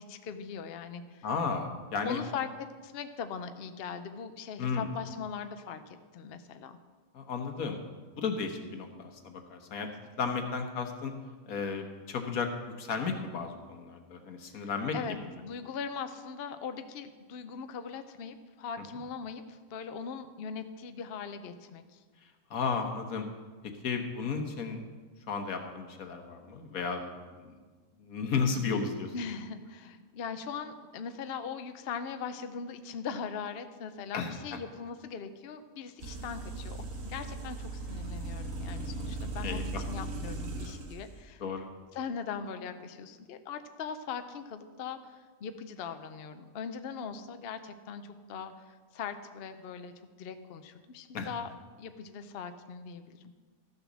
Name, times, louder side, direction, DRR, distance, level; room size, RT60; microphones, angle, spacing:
voice 1, 0.0-1.3 2.0-6.8 14.6-22.0 28.5-28.8 29.1-36.8 37.0-41.4 41.9-49.9 50.2-51.5 51.8-53.2, left 6 dB, 55° left, 9 dB, 0.8 m, -40 dB
voice 2, 1.2-2.2 4.6-4.9 7.1-7.8 8.2-9.9 10.2-11.1 11.5-12.5 12.8-14.9 22.5-23.3 23.8-24.8 25.3-27.0 27.3-27.5 28.0-29.1 34.1-34.3 39.4-39.8 41.4-41.7 51.1-51.3, left 5 dB, 85° left, 5 dB, 1.6 m, -33 dB
sound 1, 36.0-41.0, right 2 dB, 70° right, 1.7 m, -38 dB
13.5 x 6.8 x 6.2 m, 1.4 s
omnidirectional pair, 1.5 m